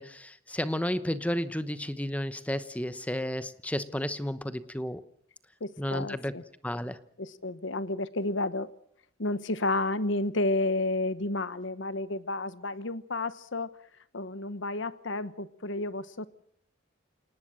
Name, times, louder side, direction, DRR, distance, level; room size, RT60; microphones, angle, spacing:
voice 1, 0.0-5.0 5.8-6.3 6.6-7.0, equal, 5° left, 13 dB, 0.9 m, -32 dB
voice 2, 5.6-6.4 7.2-8.7 9.2-13.7 14.1-16.3, left 2 dB, 65° left, 15 dB, 1.1 m, -31 dB
28.5 x 19.0 x 6.3 m, 0.65 s
head